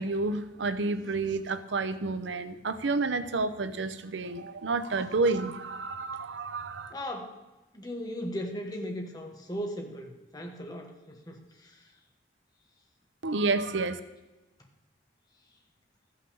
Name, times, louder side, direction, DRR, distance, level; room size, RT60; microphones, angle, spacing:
voice 1, 0.0-6.9 13.2-14.0, right 3 dB, 90° right, 11 dB, 0.7 m, -30 dB
voice 2, 6.9-7.4 7.7-11.9, equal, 20° left, 2 dB, 1.3 m, -37 dB
13.5 x 5.8 x 6.9 m, 1.1 s
head